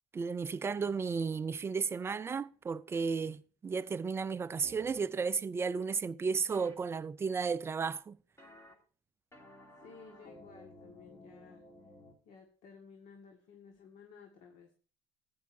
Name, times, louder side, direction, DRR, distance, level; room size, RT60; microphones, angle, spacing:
voice 1, 0.1-8.2, right 5 dB, 20° right, 0.4 m, -34 dB
sound 1, 4.6-5.0 6.5-6.7 8.4-8.7 9.3-12.1, left 1 dB, 20° left, 2.5 m, -55 dB
voice 2, 9.8-11.6 12.3-14.7, left 5 dB, 60° left, 1.7 m, -55 dB
14.5 x 9.4 x 2.7 m
supercardioid pair, 115°, 13 cm